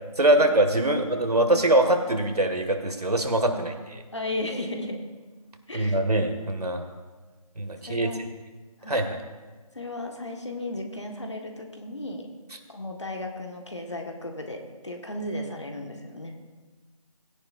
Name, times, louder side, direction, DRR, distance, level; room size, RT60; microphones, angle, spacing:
voice 1, 0.2-3.7 5.7-6.9 7.6-8.1 8.9-9.2, right 1 dB, 80° right, 6 dB, 1.8 m, -23 dB
voice 2, 4.1-5.0 5.7-6.0 7.8-8.2 8.8-9.0 9.7-12.3 12.7-16.4, left 1 dB, 50° left, 3 dB, 1.5 m, -35 dB
20.0 x 10.0 x 2.5 m, 1.3 s
figure-of-eight pair, 175°, 19 cm